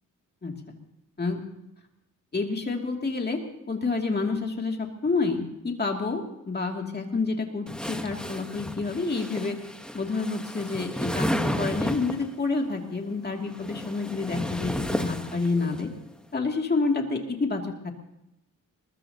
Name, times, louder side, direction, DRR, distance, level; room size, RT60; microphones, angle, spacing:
voice 1, 2.3-3.4 3.7-9.6 9.9-15.9 16.3-17.9, left 3 dB, 30° left, 2 dB, 2.5 m, -28 dB
sound 1, 7.7-12.3 13.3-15.8, equal, 5° left, 1.1 m, -32 dB
21.5 x 21.0 x 2.8 m, 0.89 s
wide cardioid pair, 150°, 34 cm